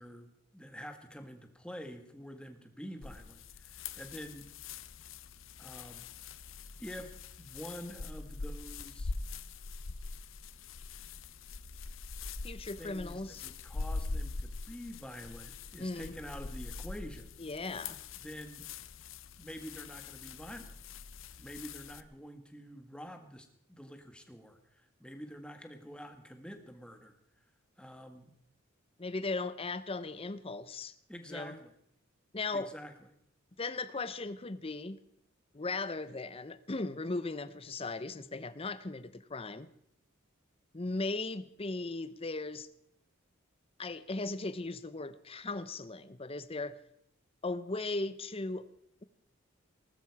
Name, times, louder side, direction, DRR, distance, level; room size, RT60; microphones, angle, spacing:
voice 1, 0.0-4.5 5.6-6.1 6.8-9.2 12.8-17.4 18.2-18.7 19.4-20.7 21.4-27.4 27.8-28.3 31.1-31.7 32.5-32.9, equal, 5° left, 6 dB, 1.6 m, -47 dB
sound 1, 3.0-22.0, left 3 dB, 70° left, 0.8 m, -43 dB
voice 2, 12.4-13.4 15.8-16.1 17.4-18.0 29.0-30.9 31.3-31.6 32.3-32.7 33.6-35.0 35.5-39.7 40.7-42.7 43.8-46.8 47.4-48.7, left 3 dB, 30° left, 15 dB, 0.8 m, -37 dB
19.5 x 12.5 x 4.8 m, 0.74 s
head